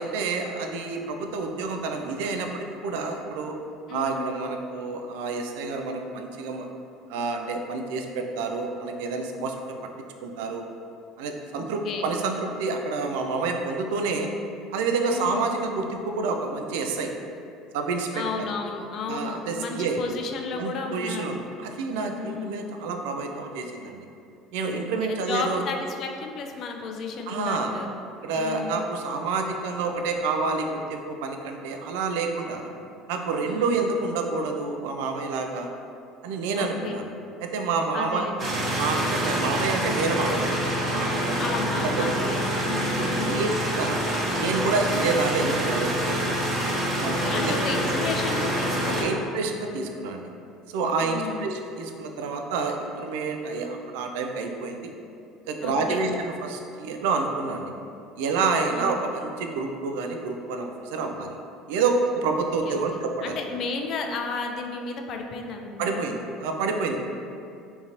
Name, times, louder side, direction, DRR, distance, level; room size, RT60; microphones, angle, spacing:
voice 1, 0.0-3.6 3.9-6.7 7.1-9.6 10.2-10.7 11.2-14.3 14.7-17.1 17.7-18.5 19.1-20.0 20.6-24.1 24.5-25.6 27.3-27.7 28.2-32.7 33.1-35.7 36.2-37.1 37.4-38.3 38.6-41.5 41.8-42.1 43.0-44.0 44.4-46.4 47.0-47.6 48.9-50.3 50.7-54.9 55.5-57.7 58.2-61.4 61.7-63.4 65.8-67.0, right 4 dB, 70° right, 4 dB, 0.3 m, -28 dB
voice 2, 3.9-4.3 11.6-12.1 15.1-15.4 18.1-21.3 22.1-22.6 24.7-27.9 28.3-28.9 33.5-33.9 36.6-36.9 37.9-38.5 41.4-43.5 47.0-49.2 51.0-51.5 55.6-56.1 58.7-59.0 62.6-66.1, left 4 dB, 50° left, 3 dB, 0.3 m, -33 dB
sound 1, 38.4-49.0, equal, 40° right, 0.8 m, -26 dB
3.7 x 2.8 x 2.5 m, 2.5 s
hypercardioid pair, 70°, 0 cm